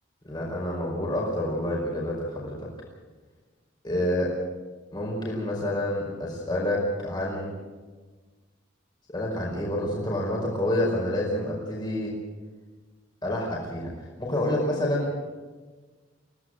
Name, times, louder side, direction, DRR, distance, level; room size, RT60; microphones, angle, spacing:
voice 1, 0.2-2.6 3.8-4.3 4.9-7.5 9.1-12.1 13.2-13.9 14.2-15.1, left 1 dB, 25° left, -3 dB, 5.0 m, -28 dB
23.5 x 17.0 x 8.0 m, 1.4 s
head